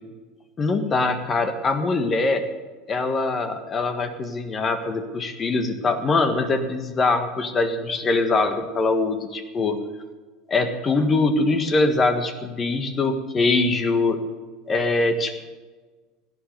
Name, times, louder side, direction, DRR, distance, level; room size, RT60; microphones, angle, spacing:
voice 1, 0.6-2.4 2.9-9.8 10.5-14.2 14.7-15.5, left 3 dB, 30° left, 8 dB, 1.5 m, -23 dB
17.5 x 9.5 x 6.8 m, 1.3 s
hypercardioid pair, 75°, 0 cm